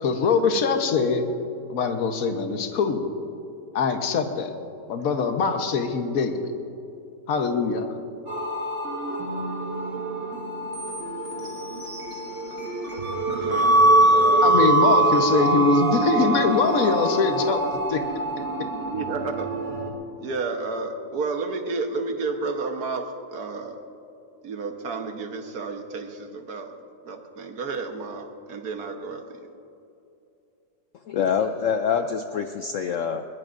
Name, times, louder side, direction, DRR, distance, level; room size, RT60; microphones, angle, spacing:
voice 1, 0.0-1.3 1.7-3.1 3.7-4.5 4.9-6.4 7.3-7.9 14.4-17.6 17.9-18.0, left 5 dB, 55° left, 6 dB, 1.4 m, -23 dB
sound 1, 8.3-19.9, right 2 dB, 40° right, 2.4 m, -23 dB
voice 2, 13.4-14.5 18.5-19.5 20.2-23.8 24.4-26.7 27.1-29.4, right 4 dB, 60° right, 5 dB, 1.6 m, -32 dB
voice 3, 31.1-33.2, left 7 dB, 75° left, 7 dB, 0.7 m, -25 dB
21.0 x 20.5 x 2.6 m, 2.7 s
omnidirectional pair, 1.9 m